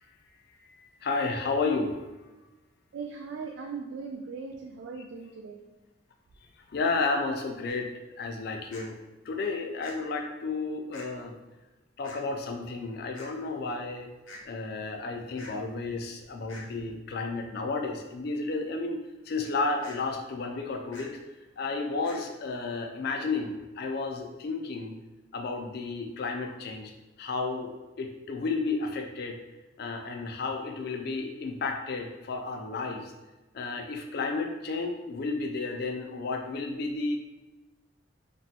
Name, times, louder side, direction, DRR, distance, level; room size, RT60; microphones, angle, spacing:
voice 1, 0.7-2.0 6.7-7.9 8.2-8.9 9.3-11.4 12.0-14.1 14.4-21.2 21.6-24.9 25.3-26.9 27.2-29.4 29.8-33.1 33.5-37.2, left 3 dB, 55° left, 4 dB, 0.4 m, -32 dB
voice 2, 2.9-5.6, right 5 dB, 70° right, 1 dB, 0.3 m, -39 dB
sound 1, 7.7-7.8 8.7-8.9 9.8-10.0 10.9-11.1 12.0-12.2 13.1-13.3 14.3-14.4 15.4-15.5 16.5-16.7 19.8-20.0 20.9-21.1 22.0-22.2, left 2 dB, 90° left, 0.6 m, -45 dB
3.2 x 2.2 x 2.7 m, 1.1 s
head